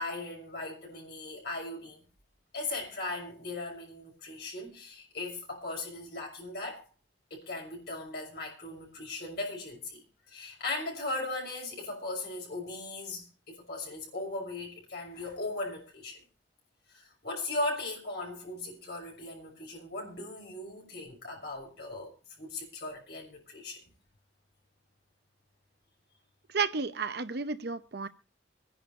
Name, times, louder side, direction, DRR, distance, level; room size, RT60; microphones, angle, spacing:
voice 1, 0.0-2.0 2.5-6.9 7.3-16.2 16.9-22.1 22.4-23.8, left 2 dB, 60° left, 6.4 m, -38 dB
voice 2, 26.5-28.1, right 5 dB, 60° right, 0.8 m, -32 dB
26.0 x 10.5 x 2.6 m
head